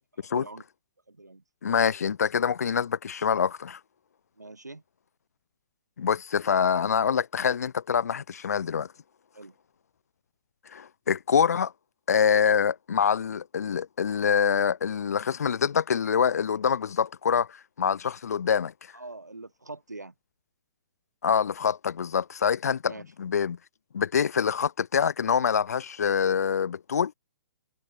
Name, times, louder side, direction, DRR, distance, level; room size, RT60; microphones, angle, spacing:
voice 1, 0.3-0.6 1.1-1.4 4.4-4.8 9.3-9.5 18.9-20.1 22.8-23.0, right 2 dB, 85° right, 1.6 m, -43 dB
voice 2, 1.6-3.8 6.0-8.9 10.7-11.7 12.1-18.7 21.2-23.6 23.9-27.1, left 7 dB, 65° left, 0.4 m, -25 dB
figure-of-eight pair, 125°, 9 cm